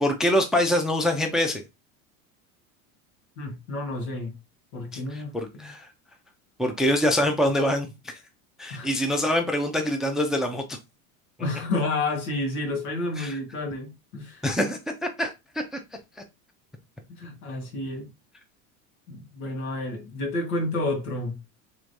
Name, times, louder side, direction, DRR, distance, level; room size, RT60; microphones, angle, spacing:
voice 1, 0.0-1.6 4.9-5.9 6.6-8.1 8.6-10.8 13.2-13.4 14.4-15.8, left 1 dB, ahead, 0.5 m, -25 dB
voice 2, 3.4-4.3 4.7-5.7 8.7-8.9 11.4-14.4 17.1-18.1 19.1-21.4, left 2 dB, 90° left, 1.5 m, -30 dB
3.5 x 3.1 x 2.6 m
supercardioid pair, 100°, 42 cm